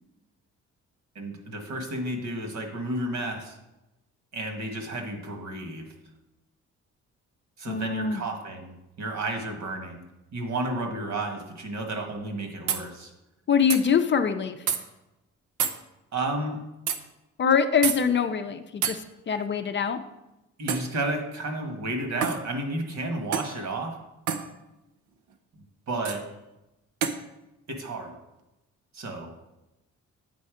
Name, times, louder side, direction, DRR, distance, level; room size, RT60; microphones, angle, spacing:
voice 1, 1.1-3.6 4.3-5.9 7.6-10.0 10.3-13.1 16.1-16.6 20.6-23.9 25.9-26.2 27.7-28.1 28.9-29.3, right 2 dB, 65° right, 3 dB, 1.6 m, -32 dB
voice 2, 7.7-8.2 13.5-14.7 17.4-20.0, left 6 dB, 40° left, 7 dB, 0.5 m, -24 dB
sound 1, 12.7-12.8 13.7-13.8 14.7-14.8 15.6-15.8 16.9-17.0 17.8-18.0 18.8-19.0 20.7-20.9 22.2-22.4 23.3-23.5 24.3-24.5 26.0-26.2 27.0-27.2, right 8 dB, 90° right, 0.7 m, -27 dB
8.4 x 4.1 x 5.0 m, 0.97 s
cardioid pair, 90°, 30 cm